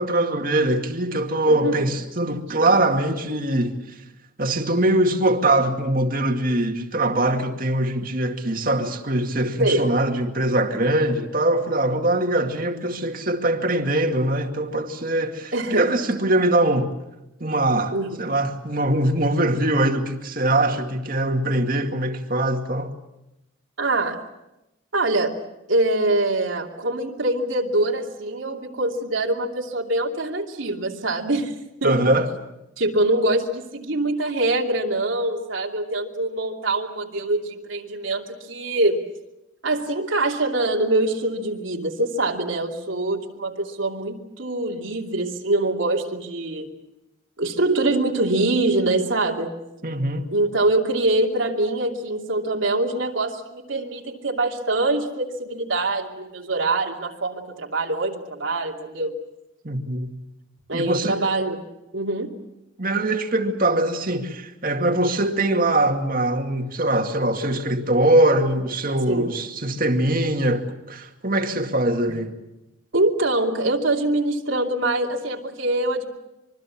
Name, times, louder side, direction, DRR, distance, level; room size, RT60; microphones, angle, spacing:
voice 1, 0.0-3.8 4.4-16.9 17.4-22.9 31.8-32.3 49.8-50.3 59.6-60.1 60.7-61.2 62.8-72.3, right 1 dB, 45° right, 2.3 m, -22 dB
voice 2, 1.5-1.9 7.1-7.2 9.6-9.9 15.5-15.9 17.9-18.2 23.8-24.3 24.9-25.3 25.7-31.5 31.8-32.2 32.8-39.1 39.6-46.7 47.4-49.5 50.3-59.2 60.7-61.6 61.9-62.3 69.1-69.3 72.9-76.0, right 2 dB, 80° right, 2.8 m, -24 dB
25.5 x 23.5 x 7.4 m
head